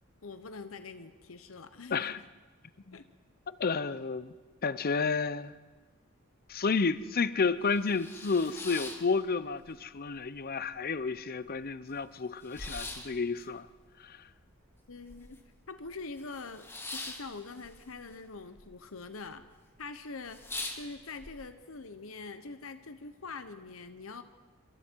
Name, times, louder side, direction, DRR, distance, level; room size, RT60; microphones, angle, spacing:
voice 1, 0.2-2.2 2.9-3.0 14.9-15.4 15.7-19.4 19.8-20.4 20.7-24.2, left 4 dB, 75° left, 10 dB, 1.0 m, -44 dB
voice 2, 3.5-4.3 4.6-5.5 6.5-13.7 14.0-14.2, left 4 dB, 45° left, 15 dB, 0.7 m, -31 dB
sound 1, 6.5-6.6 7.0-7.1 7.5-9.8 10.1-10.8 11.2-11.3 11.4-15.6 15.9-18.7 18.9-19.5 19.8-19.9 20.2-21.3, left 2 dB, 10° left, 1.9 m, -43 dB
27.5 x 24.0 x 4.7 m, 1.3 s
head